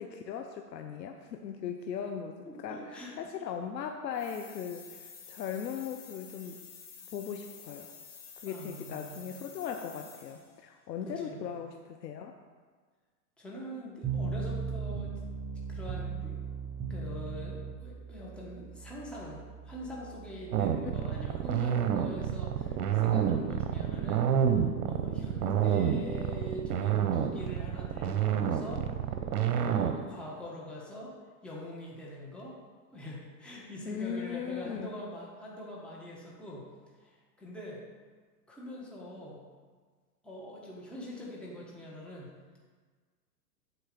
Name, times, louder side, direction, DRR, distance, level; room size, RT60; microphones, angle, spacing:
voice 1, 0.0-6.6 7.1-7.9 8.4-12.3 20.8-20.9 33.9-34.9, left 7 dB, 85° left, 4 dB, 0.8 m, -38 dB
voice 2, 2.5-3.1 8.4-9.3 11.0-11.5 13.4-15.1 15.7-16.4 16.9-31.1 31.4-32.6 32.9-36.7 37.0-37.8 38.5-39.4 40.2-42.3, equal, ahead, -5 dB, 1.3 m, -44 dB
sound 1, 4.1-10.6, left 6 dB, 35° left, 1.9 m, -50 dB
sound 2, 14.0-25.2, right 5 dB, 20° right, 0.7 m, -39 dB
sound 3, 20.5-30.0, right 9 dB, 65° right, 1.0 m, -28 dB
8.6 x 4.5 x 6.8 m, 1.5 s
hypercardioid pair, 130°, 49 cm